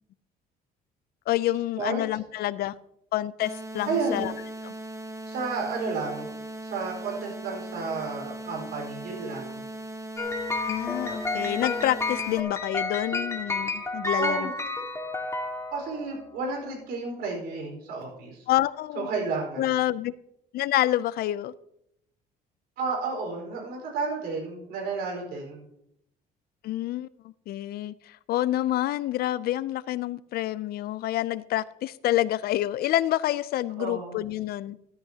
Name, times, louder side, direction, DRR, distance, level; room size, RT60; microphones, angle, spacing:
voice 1, 1.3-2.7 3.1-4.3 4.6-4.7 10.7-14.5 18.5-19.1 19.6-20.1 20.5-21.5 26.6-34.8, left 14 dB, 65° left, 0.5 m, -28 dB
sound 1, 3.4-12.4, right 1 dB, 15° right, 0.9 m, -39 dB
voice 2, 3.9-4.3 5.2-6.3 6.6-9.6 14.2-14.5 15.7-18.4 18.9-19.7 22.8-25.7 33.8-34.1, right 4 dB, 75° right, 4.7 m, -32 dB
sound 2, 10.2-16.2, left 3 dB, 15° left, 1.9 m, -31 dB
13.0 x 13.0 x 2.8 m
cardioid pair, 110°, 17 cm